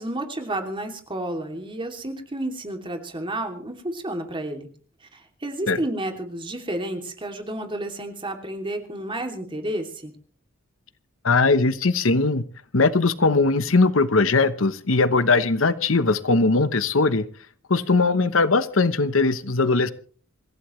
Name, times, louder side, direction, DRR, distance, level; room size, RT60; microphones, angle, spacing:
voice 1, 0.0-4.7 5.1-10.1, right 1 dB, 25° right, 4 dB, 2.9 m, -31 dB
voice 2, 11.2-12.4 12.7-17.3 17.7-19.9, left 3 dB, 80° left, 13 dB, 1.1 m, -20 dB
26.5 x 15.5 x 3.2 m, 0.43 s
head